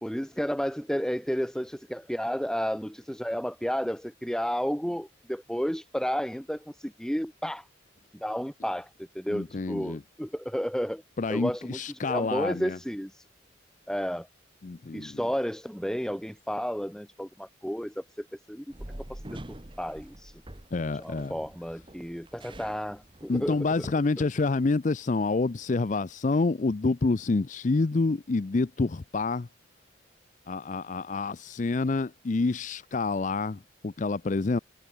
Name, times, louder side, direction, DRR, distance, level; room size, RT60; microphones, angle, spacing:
voice 1, 0.0-7.7 8.1-8.9 9.1-11.0 11.3-13.2 13.9-14.3 14.9-18.6 19.1-20.4 21.0-23.9, equal, 5° left, 1.3 m, -32 dB
voice 2, 9.3-10.0 11.2-12.8 14.6-15.2 20.7-21.3 23.3-29.5 30.5-34.6, left 3 dB, 40° left, 0.5 m, -28 dB
sound 1, 18.7-23.9, right 1 dB, 25° right, 1.6 m, -45 dB
head